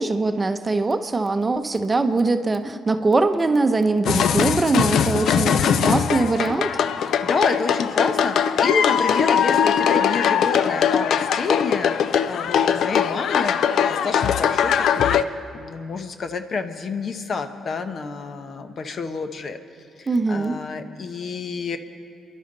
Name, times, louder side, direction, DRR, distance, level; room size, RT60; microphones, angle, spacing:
voice 1, 0.0-6.7 20.1-20.6, right 3 dB, 25° right, 8 dB, 0.8 m, -22 dB
sound 1, 4.1-15.2, left 8 dB, 70° left, 0.5 m, -21 dB
voice 2, 7.2-13.6 13.9-15.2 15.5-19.6 20.0-21.8, left 4 dB, 50° left, 8 dB, 0.9 m, -29 dB
28.5 x 11.0 x 4.0 m, 2.4 s
cardioid pair, 90°, 0 cm